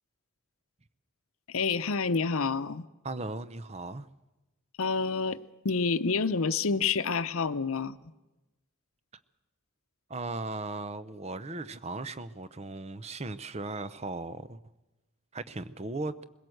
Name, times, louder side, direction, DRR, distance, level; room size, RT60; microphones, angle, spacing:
voice 1, 1.5-2.9 4.8-5.4 5.6-8.0, left 4 dB, 80° left, 0.8 m, -28 dB
voice 2, 3.0-4.1 10.1-14.6 15.3-16.2, right 2 dB, 30° right, 0.6 m, -37 dB
21.0 x 17.0 x 7.9 m
head